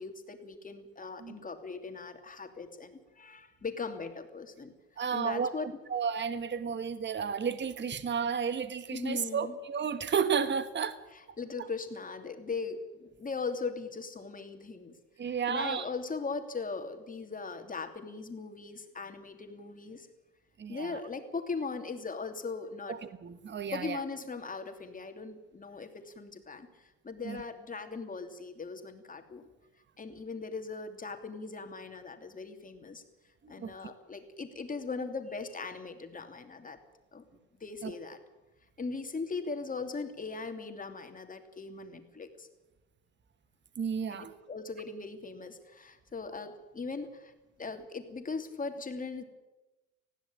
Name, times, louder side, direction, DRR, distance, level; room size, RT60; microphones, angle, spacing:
voice 1, 0.0-4.7 5.1-5.7 8.9-9.6 11.1-15.0 15.2-20.1 20.7-23.0 23.7-29.5 30.0-33.0 33.5-36.8 37.1-37.2 37.6-38.2 38.8-42.5 44.1-47.3 47.6-49.2, left 4 dB, 25° left, 6 dB, 2.9 m, -39 dB
voice 2, 5.0-5.5 5.9-11.0 15.2-15.8 20.6-21.0 22.9-24.0 27.2-27.4 33.6-33.9 37.8-37.9 43.8-44.3, right 6 dB, 30° right, 12 dB, 1.4 m, -32 dB
20.0 x 15.5 x 8.9 m, 1.0 s
cardioid pair, 105°, 34 cm